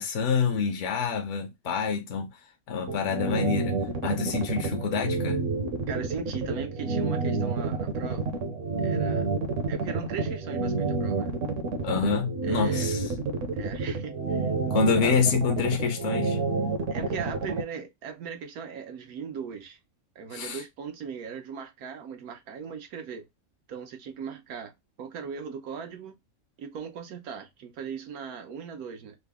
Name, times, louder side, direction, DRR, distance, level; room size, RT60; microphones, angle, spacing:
voice 1, 0.0-2.4 2.7-3.8 4.0-5.4 11.8-13.1 14.7-16.4 20.3-20.6, left 6 dB, 60° left, 0.9 m, -27 dB
sound 1, 2.9-17.6, right 4 dB, 65° right, 1.0 m, -28 dB
voice 2, 5.9-8.4 8.8-9.3 9.7-11.3 12.4-12.9 13.5-14.5 15.0-15.1 16.9-19.8 20.2-23.3 23.7-24.7 25.0-26.1 26.6-29.2, right 6 dB, 90° right, 1.3 m, -39 dB
3.8 x 2.0 x 3.4 m
omnidirectional pair, 1.5 m